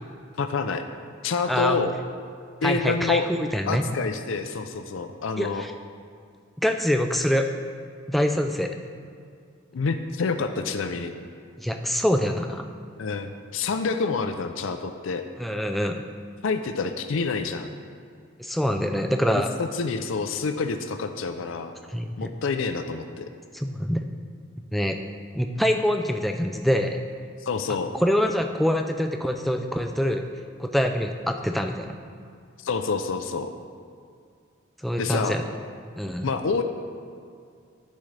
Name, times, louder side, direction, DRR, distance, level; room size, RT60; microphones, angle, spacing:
voice 1, 0.4-0.8 1.2-2.0 2.6-3.3 3.7-5.6 9.7-11.1 13.0-15.2 16.4-17.7 19.4-21.8 22.2-23.3 27.4-27.9 32.6-33.5 35.0-35.4 36.2-36.6, left 4 dB, 70° left, 7 dB, 0.4 m, -27 dB
voice 2, 1.5-1.8 2.6-3.9 5.4-5.7 6.6-7.5 8.1-8.7 11.6-12.6 15.4-16.0 18.4-19.5 21.9-22.3 23.5-24.0 24.7-25.0 25.3-27.0 28.0-30.2 30.6-32.0 34.8-35.4 36.0-36.3, equal, ahead, 4 dB, 0.3 m, -25 dB
10.0 x 7.4 x 3.3 m, 2.2 s
head